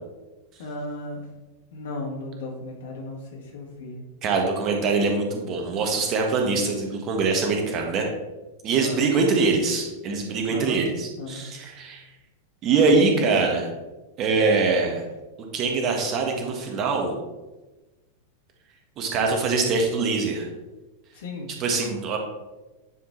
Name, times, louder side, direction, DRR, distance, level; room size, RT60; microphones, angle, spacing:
voice 1, 0.6-1.3 1.7-4.0 8.8-9.1 10.5-10.8 11.2-11.4 21.1-21.5, left 2 dB, 60° left, 0 dB, 1.8 m, -35 dB
voice 2, 4.2-8.1 8.6-12.0 12.6-13.7 14.2-15.0 15.5-17.1 19.0-20.5 21.6-22.2, right 4 dB, 35° right, 2 dB, 1.4 m, -23 dB
10.0 x 3.9 x 4.4 m, 1.1 s
figure-of-eight pair, 90°, 0 cm